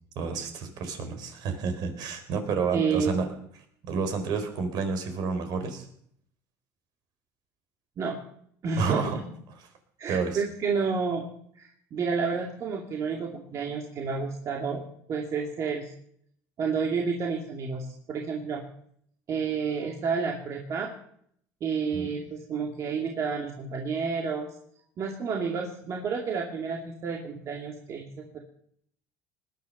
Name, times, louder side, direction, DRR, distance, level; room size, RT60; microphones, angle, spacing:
voice 1, 0.2-3.3 3.9-5.9 8.8-9.2 10.1-10.4 21.9-22.1, right 5 dB, 60° right, 8 dB, 4.2 m, -29 dB
voice 2, 2.7-3.1 8.0-8.2 8.6-9.0 10.0-11.3 11.5-14.8 15.1-15.9 16.6-18.6 19.3-20.9 21.6-24.5 25.0-28.4, right 5 dB, 40° right, 1 dB, 2.4 m, -30 dB
20.0 x 10.5 x 6.7 m, 0.67 s
cardioid pair, 130°, 8 cm